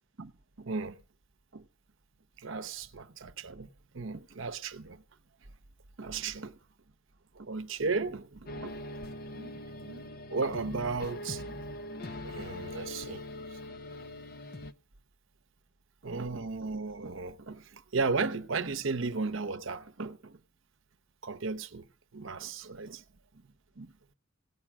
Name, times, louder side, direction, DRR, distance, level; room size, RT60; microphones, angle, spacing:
voice 1, 0.6-1.0 1.5-1.6 2.4-3.7 3.9-5.0 6.0-6.6 7.3-8.7 9.3-11.6 12.2-13.2 13.5-13.6 16.0-20.4 21.2-21.9 22.1-23.0 23.8-23.9, right 4 dB, 65° right, 0.9 m, -35 dB
sound 1, 8.5-14.7, left 1 dB, 45° left, 0.8 m, -42 dB
17.0 x 8.7 x 6.1 m
head